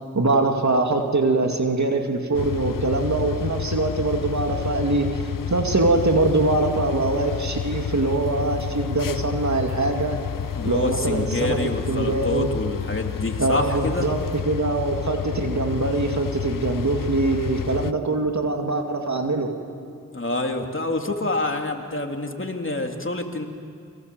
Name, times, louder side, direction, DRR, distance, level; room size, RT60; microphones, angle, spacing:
voice 1, 0.1-10.2 10.6-11.6 11.9-12.5 13.4-14.2 14.5-19.5, right 2 dB, 60° right, 3 dB, 2.4 m, -23 dB
sound 1, 2.3-17.9, left 9 dB, 75° left, 0.7 m, -30 dB
sound 2, 5.9-14.4, left 1 dB, 20° left, 6.8 m, -45 dB
voice 2, 10.5-14.1 20.1-23.4, left 2 dB, 40° left, 3 dB, 3.1 m, -27 dB
29.5 x 23.5 x 7.8 m, 2.4 s
cardioid pair, 45°, 33 cm